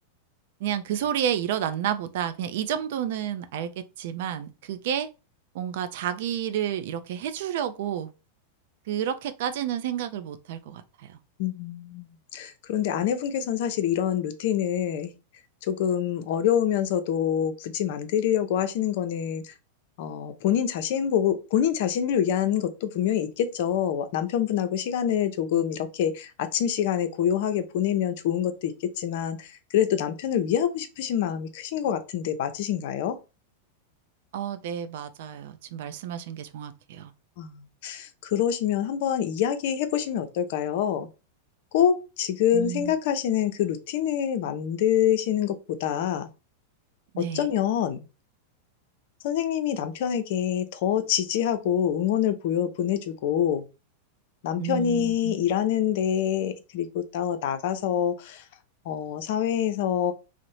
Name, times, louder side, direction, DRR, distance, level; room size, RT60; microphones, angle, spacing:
voice 1, 0.6-3.7 4.0-5.1 5.5-8.1 8.9-11.2 25.5-25.6 34.3-37.1 42.5-42.9 47.1-47.5 54.6-55.4, right 9 dB, 65° right, 0.4 m, -30 dB
voice 2, 11.4-15.1 15.6-19.5 20.0-33.2 37.4-41.1 41.7-46.3 47.2-48.0 49.2-53.6 54.4-58.4 58.9-60.1, left 9 dB, 60° left, 0.5 m, -26 dB
2.7 x 2.0 x 3.0 m
hypercardioid pair, 105°, 0 cm